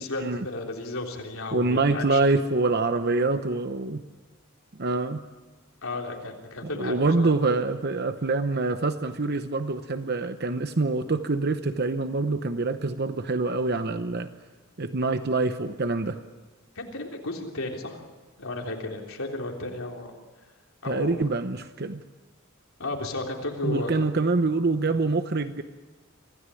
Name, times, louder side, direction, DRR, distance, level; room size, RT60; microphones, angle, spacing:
voice 1, 0.0-2.2 5.8-7.3 16.8-18.0 18.4-20.1 20.8-21.3 22.8-24.0, left 2 dB, 75° left, 1 dB, 3.6 m, -33 dB
voice 2, 1.5-4.0 4.8-5.2 6.6-14.3 14.8-16.2 20.8-22.0 23.6-25.6, right 3 dB, 50° right, 9 dB, 0.9 m, -25 dB
25.0 x 16.0 x 9.9 m, 1.3 s
head